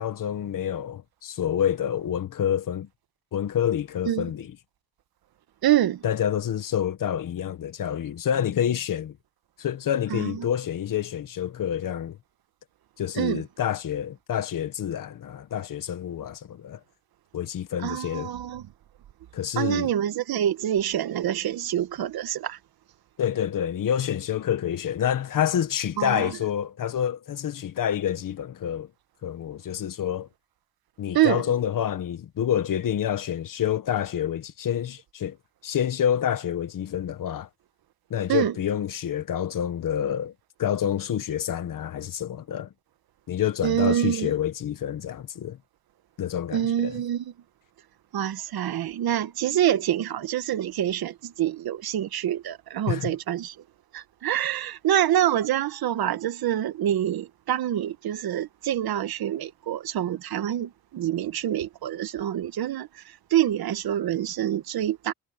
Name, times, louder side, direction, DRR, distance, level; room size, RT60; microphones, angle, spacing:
voice 1, 0.0-2.9 3.3-4.5 6.0-9.1 9.6-12.2 13.0-16.8 17.3-18.3 19.3-19.9 23.2-28.9 29.2-30.3 31.0-35.4 35.6-37.5 38.1-40.3 40.6-42.7 43.3-45.6 46.2-47.0 52.9-53.2, left 9 dB, 55° left, 1.5 m, -28 dB
voice 2, 5.6-6.0 10.1-10.5 13.1-13.4 17.8-18.7 19.6-22.6 26.0-26.3 31.1-31.4 38.3-38.5 43.6-44.3 46.5-47.3 48.1-53.5 53.9-65.1, right 11 dB, 70° right, 1.5 m, -26 dB
cardioid pair, 135°, 38 cm